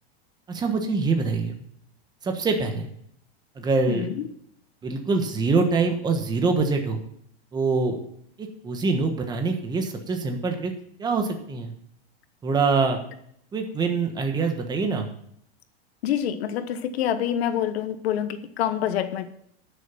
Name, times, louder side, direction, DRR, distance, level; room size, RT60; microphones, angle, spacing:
voice 1, 0.5-1.6 2.2-2.9 3.6-4.0 4.8-7.0 7.5-8.0 8.4-10.7 11.0-11.7 12.4-13.0 13.5-15.1, right 4 dB, 15° right, 4 dB, 1.3 m, -24 dB
voice 2, 3.9-4.3 16.0-19.3, left 10 dB, 75° left, 11 dB, 1.1 m, -26 dB
12.0 x 6.9 x 5.6 m, 0.69 s
supercardioid pair, 160°, 31 cm